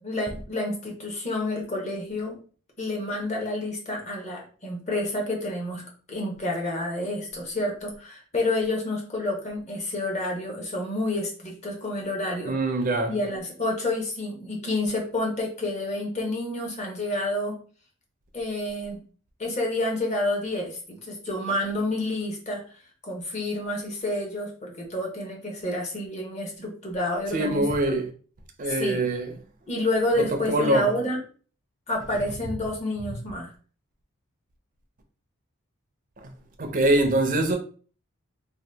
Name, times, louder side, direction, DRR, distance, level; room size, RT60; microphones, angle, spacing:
voice 1, 0.0-2.4 2.8-12.6 13.1-17.6 18.3-19.0 19.4-22.6 23.0-28.0 28.7-29.0 29.7-31.2 31.9-33.5, left 1 dB, 30° left, 0.8 m, -29 dB
voice 2, 12.4-13.1 27.3-28.1 28.6-29.3 30.3-30.9 36.2-37.6, right 1 dB, 40° right, 0.5 m, -24 dB
2.8 x 2.2 x 3.3 m
head